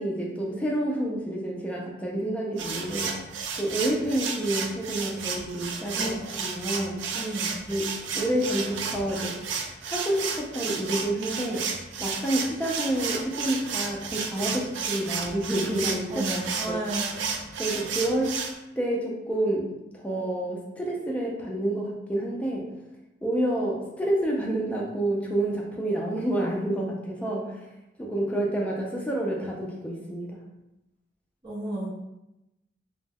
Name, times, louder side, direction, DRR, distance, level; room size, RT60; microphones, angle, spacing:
voice 1, 0.0-3.1 3.5-7.0 7.7-7.9 8.1-11.7 12.0-16.3 16.7-16.8 17.6-18.4 18.8-22.7 23.2-27.6 28.0-30.4, right 1 dB, 5° left, -2 dB, 0.4 m, -29 dB
sound 1, 2.6-18.5, right 5 dB, 85° right, 0.4 m, -32 dB
voice 2, 5.9-6.4 7.1-7.5 16.1-17.2 31.4-31.9, right 1 dB, 25° right, -9 dB, 0.7 m, -32 dB
2.2 x 2.1 x 3.4 m, 0.94 s
head